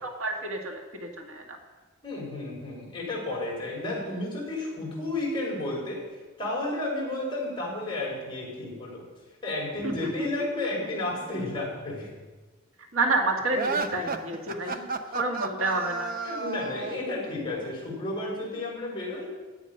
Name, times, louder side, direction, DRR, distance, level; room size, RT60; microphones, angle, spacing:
voice 1, 0.0-1.4 9.8-10.7 12.9-14.8 15.1-16.1, right 2 dB, 65° right, 2 dB, 1.9 m, -29 dB
voice 2, 2.0-6.0 6.4-9.0 9.4-12.1 14.6-14.8 16.2-19.3, left 2 dB, 25° left, -4 dB, 5.5 m, -32 dB
sound 1, 13.5-17.1, right 4 dB, 45° right, 0.8 m, -32 dB
16.0 x 10.5 x 5.5 m, 1.3 s
head